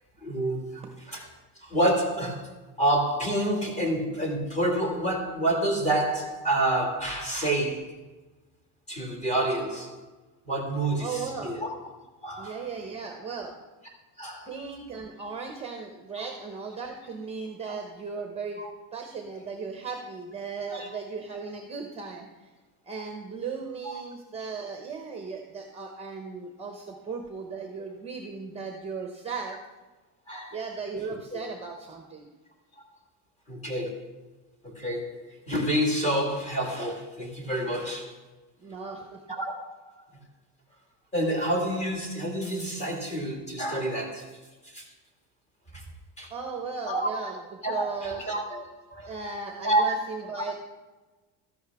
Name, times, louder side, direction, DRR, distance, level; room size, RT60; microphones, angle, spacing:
voice 1, 0.2-1.3 1.6-8.0 8.9-10.0 10.5-11.7 12.2-12.6 14.2-14.5 17.7-17.8 18.6-18.7 20.7-20.9 23.8-24.0 26.9-27.0 30.3-30.6 31.3-31.4 33.5-34.2 34.6-38.2 39.3-39.5 40.0-40.1 41.1-44.4 44.6-44.9 45.7-45.8 46.2-46.3 46.9-47.1 47.6-48.6 48.9-49.1 49.6-49.9, right 1 dB, 15° left, 0 dB, 2.1 m, -28 dB
voice 2, 11.0-11.6 12.4-13.6 14.4-18.6 18.9-22.5 22.9-29.6 30.5-32.3 38.6-39.2 46.3-47.4 47.6-48.4 49.1-50.5, right 5 dB, 15° right, 3 dB, 0.9 m, -36 dB
13.5 x 11.0 x 3.5 m, 1.2 s
cardioid pair, 170°, 41 cm